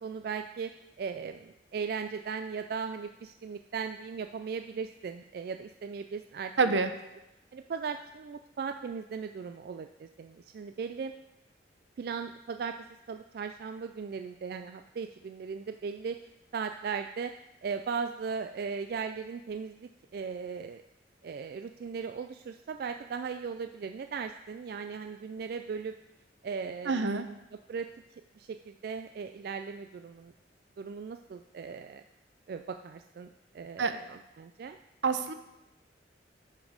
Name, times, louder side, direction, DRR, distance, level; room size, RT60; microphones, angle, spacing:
voice 1, 0.0-0.7 1.0-6.8 7.5-11.1 12.0-12.8 13.1-16.2 16.5-17.3 17.6-20.8 21.2-25.9 26.4-27.4 27.7-27.9 28.4-30.3 30.8-32.0 32.5-33.3 33.5-34.8, right 5 dB, 55° right, 7 dB, 0.3 m, -37 dB
voice 2, 6.6-6.9 26.9-27.3 33.8-33.9 35.0-35.3, right 4 dB, 80° right, 9 dB, 0.7 m, -26 dB
11.0 x 5.2 x 5.0 m, 0.92 s
head